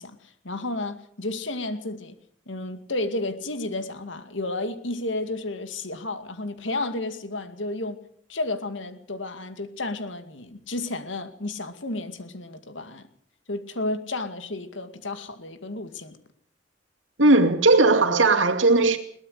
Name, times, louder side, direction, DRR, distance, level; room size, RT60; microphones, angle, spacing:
voice 1, 0.0-2.2 2.5-8.0 8.3-13.1 13.5-16.2, left 2 dB, 75° left, 2.2 m, -32 dB
voice 2, 17.2-19.0, right 2 dB, 80° right, 2.4 m, -17 dB
21.5 x 18.5 x 6.6 m
head